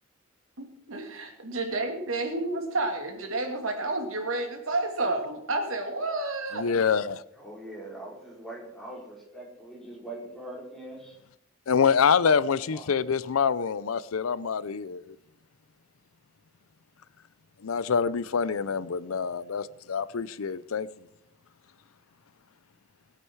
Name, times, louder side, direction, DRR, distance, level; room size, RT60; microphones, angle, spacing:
voice 1, 0.6-6.6, right 2 dB, 80° right, 2.6 m, -30 dB
voice 2, 6.5-7.2 11.7-15.1 17.6-20.9, left 6 dB, 85° left, 0.5 m, -26 dB
voice 3, 7.3-11.2 12.7-12.9, right 1 dB, ahead, 4.8 m, -42 dB
19.5 x 8.7 x 4.7 m
head